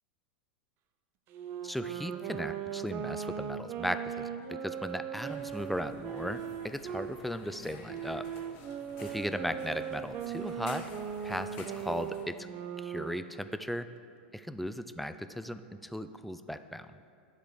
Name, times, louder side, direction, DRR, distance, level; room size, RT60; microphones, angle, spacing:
Wind instrument woodwind instrument, 1.3-7.1 7.9-13.3, right 8 dB, 45° right, 0.6 m, -39 dB
voice 1, 1.6-8.3 9.0-10.9 11.2-12.5 12.8-13.9 14.3-16.9, equal, ahead, 11 dB, 0.3 m, -37 dB
sound 1, 5.2-12.2, left 3 dB, 55° left, 1.4 m, -51 dB
10.5 x 4.0 x 6.4 m, 2.3 s
hypercardioid pair, 105°, 5 cm